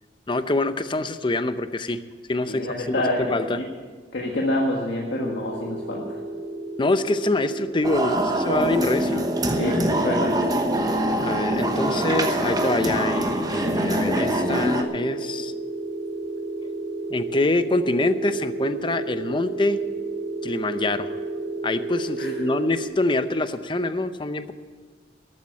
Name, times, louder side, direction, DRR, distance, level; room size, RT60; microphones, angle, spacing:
voice 1, 0.3-2.0 2.3-3.6 6.8-9.2 11.2-15.5 17.1-19.8 20.4-21.2 21.6-24.5, left 2 dB, 30° left, 11 dB, 0.6 m, -25 dB
voice 2, 2.5-3.6 4.1-6.0 9.6-10.4 22.2-22.3, left 1 dB, 85° left, -2 dB, 1.7 m, -27 dB
sound 1, 5.1-22.9, right 2 dB, 55° right, 1.8 m, -33 dB
sound 2, 7.8-14.8, right 1 dB, 20° right, 1.0 m, -24 dB
13.5 x 8.8 x 8.6 m, 1.5 s
head